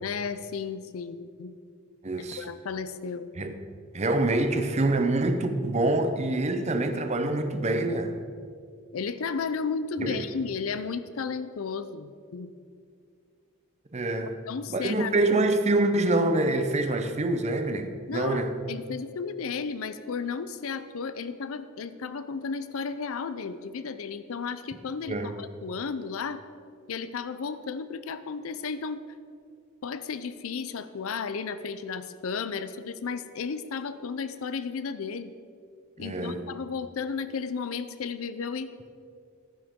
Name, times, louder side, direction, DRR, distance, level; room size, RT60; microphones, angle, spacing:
voice 1, 0.0-1.5 2.2-3.3 8.9-12.5 14.5-15.1 18.1-18.4 18.7-26.4 26.9-29.0 29.8-35.3 36.0-38.7, left 5 dB, 70° left, 0.5 m, -33 dB
voice 2, 2.0-2.4 3.4-3.5 3.9-8.2 10.0-10.2 13.9-14.3 14.7-18.6 25.1-25.4 36.0-36.5, right 2 dB, 30° right, 0.6 m, -26 dB
11.5 x 9.9 x 3.7 m
head